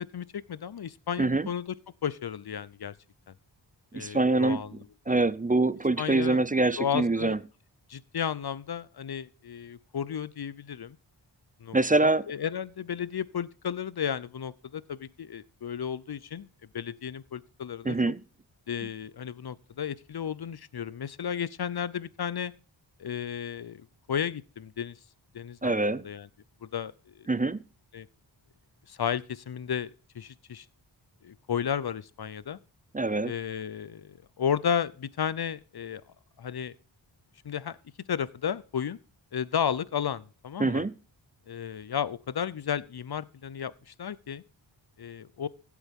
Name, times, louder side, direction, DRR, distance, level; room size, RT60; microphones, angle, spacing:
voice 1, 0.1-1.7 2.0-2.9 3.3-3.4 3.9-4.8 5.1-5.2 6.0-6.4 6.8-7.4 7.9-11.0 11.6-18.0 18.7-22.5 23.0-23.8 24.1-25.0 25.3-26.3 26.6-27.3 27.9-28.1 28.9-30.7 31.2-32.6 33.2-36.0 36.4-36.8 37.4-37.8 38.1-39.0 39.3-40.8 41.5-44.4 45.0-45.5, left 8 dB, 50° left, 0.7 m, -33 dB
voice 2, 3.9-4.6 5.1-7.4 11.7-12.3 17.8-18.2 25.6-26.1 27.3-27.6 32.9-33.3 40.6-40.9, right 2 dB, 20° right, 0.4 m, -24 dB
16.0 x 8.3 x 3.6 m
cardioid pair, 45°, 48 cm